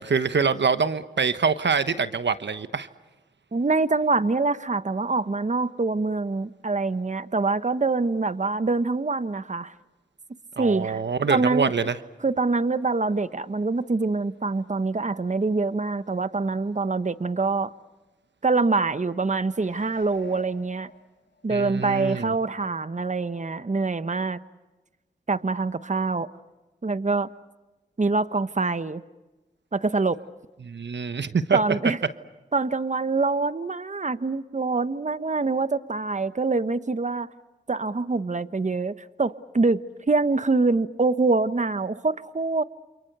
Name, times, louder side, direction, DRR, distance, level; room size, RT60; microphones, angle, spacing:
voice 1, 0.0-2.9 10.6-12.0 21.5-22.3 30.6-31.9, right 5 dB, 80° right, 11 dB, 1.2 m, -25 dB
voice 2, 3.5-9.7 10.6-11.0 11.3-11.7 12.2-17.7 18.4-20.9 21.4-24.4 25.3-26.3 26.8-27.3 28.0-29.0 29.7-30.2 31.5-32.0 32.5-37.3 37.7-39.8 40.1-42.6, right 3 dB, 40° right, 13 dB, 1.1 m, -25 dB
sound 1, 19.5-21.6 22.0-22.1, left 2 dB, 85° left, 2.8 m, -48 dB
28.5 x 28.5 x 6.8 m, 1.1 s
cardioid pair, 40°, 18 cm